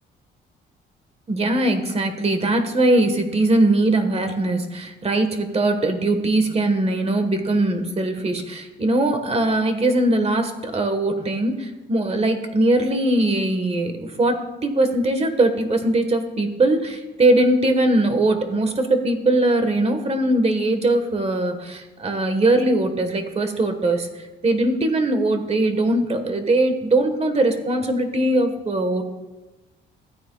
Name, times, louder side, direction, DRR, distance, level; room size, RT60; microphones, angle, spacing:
voice 1, 1.3-29.0, right 2 dB, 30° right, 7 dB, 1.3 m, -21 dB
14.5 x 9.3 x 2.3 m, 1.1 s
cardioid pair, 90°, 20 cm